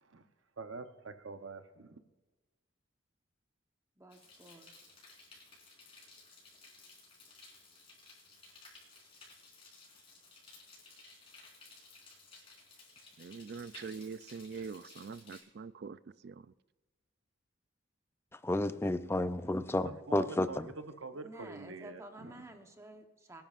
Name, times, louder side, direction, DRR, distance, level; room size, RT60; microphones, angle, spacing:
voice 1, 0.6-2.0 19.8-22.4, right 3 dB, 75° right, 0.9 m, -45 dB
voice 2, 4.0-4.7 21.1-23.4, right 1 dB, 15° right, 1.0 m, -51 dB
sound 1, 4.1-15.4, left 3 dB, 30° left, 4.5 m, -57 dB
voice 3, 13.2-16.5, right 5 dB, 55° right, 0.4 m, -44 dB
voice 4, 18.4-20.7, left 1 dB, 10° left, 0.4 m, -31 dB
24.0 x 10.5 x 2.5 m
head